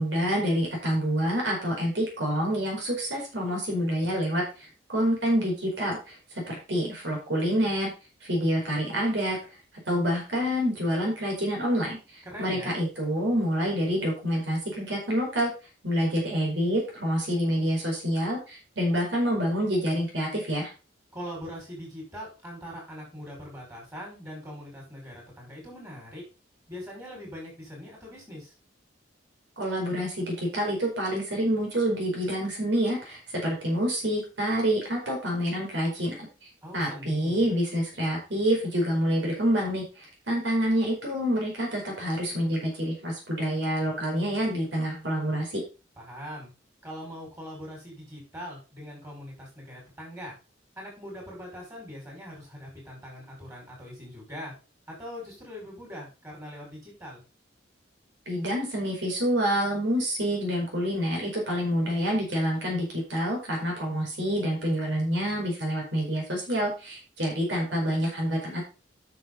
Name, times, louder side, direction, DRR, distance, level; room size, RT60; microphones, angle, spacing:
voice 1, 0.0-7.9 8.2-9.4 9.9-15.5 15.8-20.7 29.6-36.3 36.7-45.6 58.3-68.6, equal, 65° right, -1 dB, 4.7 m, -27 dB
voice 2, 12.3-12.8 21.1-26.2 26.7-28.5 36.6-37.5 46.0-46.5 46.8-50.3 50.8-54.5 54.9-57.2, equal, 15° right, -2 dB, 5.7 m, -41 dB
9.9 x 6.6 x 4.0 m, 0.31 s
head